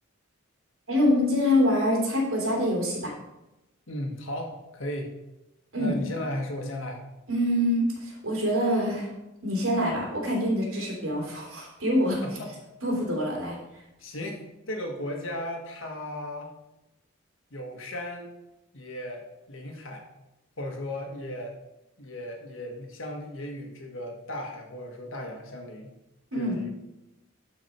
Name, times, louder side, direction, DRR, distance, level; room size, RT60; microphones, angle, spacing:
voice 1, 0.9-3.1 5.7-6.0 7.3-9.1 9.4-12.2 12.8-13.6 26.3-26.6, left 1 dB, 70° right, -3 dB, 3.3 m, -25 dB
voice 2, 3.9-5.1 5.8-7.0 12.2-12.5 14.0-16.5 17.5-18.3 18.7-20.1 20.6-21.5 22.0-25.9 26.3-26.7, left 1 dB, 65° left, 2 dB, 1.6 m, -36 dB
12.0 x 4.8 x 4.5 m, 0.96 s
head